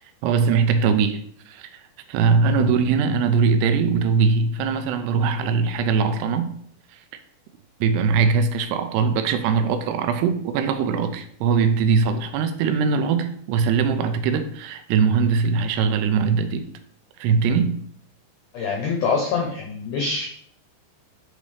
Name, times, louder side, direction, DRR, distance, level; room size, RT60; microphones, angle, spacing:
voice 1, 0.2-1.8 2.1-6.5 7.8-16.7 17.2-17.8, right 5 dB, 85° right, 2.7 m, -21 dB
voice 2, 18.5-20.3, left 4 dB, 80° left, 1.8 m, -25 dB
8.9 x 4.0 x 3.3 m
omnidirectional pair, 4.8 m